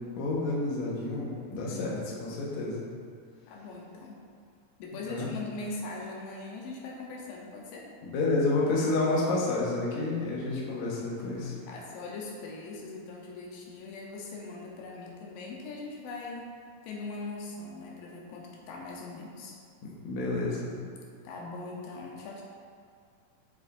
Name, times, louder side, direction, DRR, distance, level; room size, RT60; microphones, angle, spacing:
voice 1, 0.2-2.8 5.1-5.3 8.0-11.6 20.0-20.7, left 2 dB, 65° left, -5 dB, 2.2 m, -29 dB
voice 2, 1.7-2.2 3.5-4.2 4.8-7.9 11.7-16.5 16.8-19.6 21.2-22.4, left 3 dB, 85° left, -2 dB, 2.4 m, -41 dB
7.4 x 6.6 x 2.5 m, 2.3 s
omnidirectional pair, 3.9 m